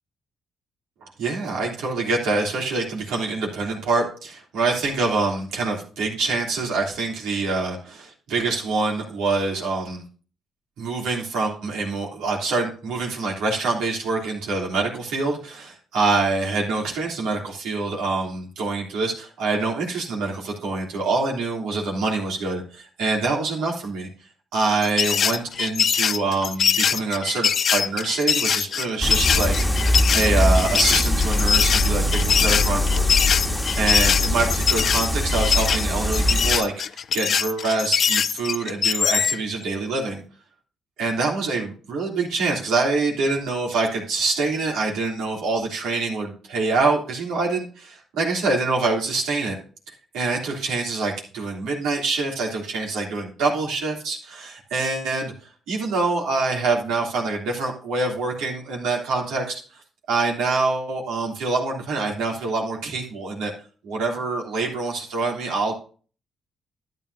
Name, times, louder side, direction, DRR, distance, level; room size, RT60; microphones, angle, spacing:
voice 1, 1.0-10.0 10.8-24.1 24.5-33.3 33.8-36.7 37.1-40.2 41.0-49.5 50.1-55.3 55.7-59.6 60.1-63.5 63.8-65.7, right 3 dB, 90° right, -1 dB, 3.1 m, -25 dB
sound 1, 24.8-39.4, left 7 dB, 55° left, 0.4 m, -22 dB
sound 2, 29.0-36.6, left 1 dB, 10° left, 1.4 m, -22 dB
12.5 x 9.2 x 2.7 m, 0.39 s
cardioid pair, 90°, 0 cm